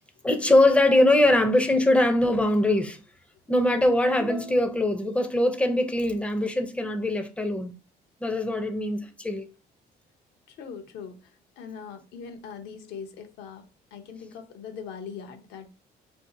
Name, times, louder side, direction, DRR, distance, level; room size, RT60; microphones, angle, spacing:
voice 1, 0.2-3.0 3.5-7.7 8.2-9.5, left 1 dB, 5° left, 0.5 m, -22 dB
voice 2, 10.5-13.7 13.9-15.7, left 6 dB, 80° left, 0.7 m, -41 dB
2.6 x 2.5 x 3.7 m
cardioid pair, 110°, 17 cm